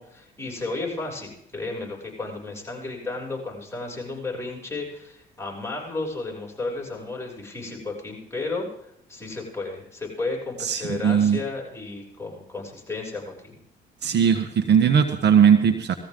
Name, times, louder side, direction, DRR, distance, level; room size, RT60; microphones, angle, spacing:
voice 1, 0.0-13.6, left 3 dB, 15° left, -2 dB, 6.7 m, -33 dB
voice 2, 10.6-11.4 14.0-15.9, right 7 dB, 60° right, 7 dB, 1.3 m, -19 dB
19.0 x 14.5 x 3.8 m, 0.76 s
supercardioid pair, 70°, 20 cm